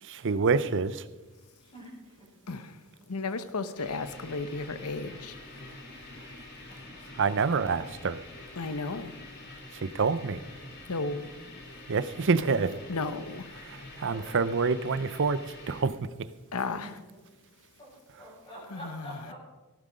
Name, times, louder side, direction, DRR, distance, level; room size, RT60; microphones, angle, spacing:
voice 1, 0.0-1.1 7.1-8.2 9.7-10.4 11.9-12.8 13.6-16.3 18.1-18.3, right 4 dB, 55° right, 14 dB, 0.6 m, -27 dB
voice 2, 1.6-2.3 6.7-7.0 14.1-14.2 16.8-16.9 17.8-17.9 18.2-19.3, equal, 25° left, -11 dB, 6.4 m, -46 dB
voice 3, 2.5-2.8 3.1-5.4 8.6-9.2 10.9-11.3 12.9-13.5 16.5-17.0 18.7-19.2, left 3 dB, 80° left, 12 dB, 0.9 m, -34 dB
sound 1, 3.8-15.8, left 2 dB, 50° left, 3.1 m, -46 dB
17.0 x 11.5 x 5.1 m, 1.1 s
head